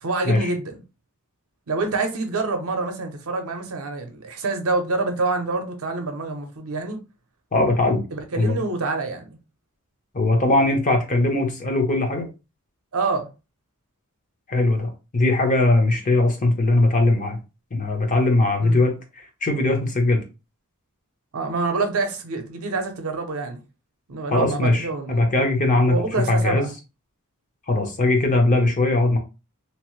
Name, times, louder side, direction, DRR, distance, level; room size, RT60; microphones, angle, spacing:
voice 1, 0.0-0.8 1.7-7.0 8.1-9.3 12.9-13.3 18.6-18.8 21.3-23.6 24.1-25.3 25.8-26.7, right 3 dB, 65° right, 0.6 m, -26 dB
voice 2, 7.5-8.0 8.4-8.6 10.1-12.3 14.5-17.4 17.7-19.0 19.4-20.2 24.3-26.0 26.3-26.7 27.7-29.2, left 2 dB, 35° left, 0.7 m, -20 dB
2.9 x 2.0 x 3.0 m
head